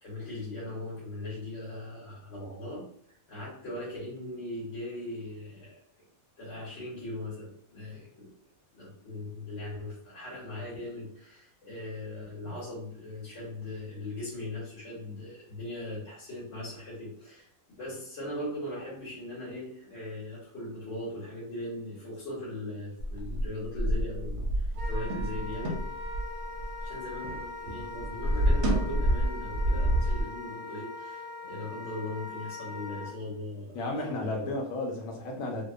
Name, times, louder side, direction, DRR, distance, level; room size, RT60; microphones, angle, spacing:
voice 1, 0.0-6.0 6.4-8.3 8.7-17.5 17.8-25.8 26.8-34.5, left 1 dB, 55° left, -7 dB, 1.3 m, -39 dB
sound 1, 23.0-27.4 27.7-30.2, right 1 dB, 70° right, 0.8 m, -28 dB
Wind instrument woodwind instrument, 24.7-33.1, left 3 dB, 30° right, 0.7 m, -41 dB
voice 2, 33.7-35.7, left 2 dB, 75° left, 1 dB, 1.0 m, -33 dB
2.8 x 2.0 x 2.3 m, 0.64 s
omnidirectional pair, 1.5 m